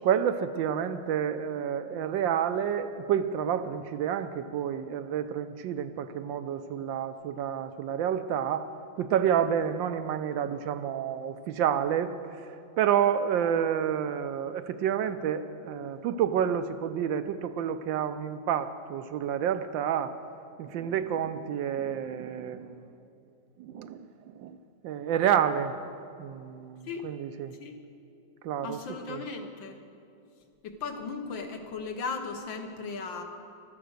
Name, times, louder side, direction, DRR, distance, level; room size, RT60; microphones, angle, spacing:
voice 1, 0.0-8.7 9.0-20.2 20.6-22.8 23.6-24.1 24.3-24.6 24.8-25.8 26.2-27.5 28.4-29.3, right 9 dB, 75° right, 11 dB, 1.2 m, -29 dB
voice 2, 28.6-29.8 30.6-33.2, left 4 dB, 70° left, 5 dB, 1.8 m, -36 dB
15.0 x 12.5 x 6.5 m, 2.6 s
omnidirectional pair, 2.2 m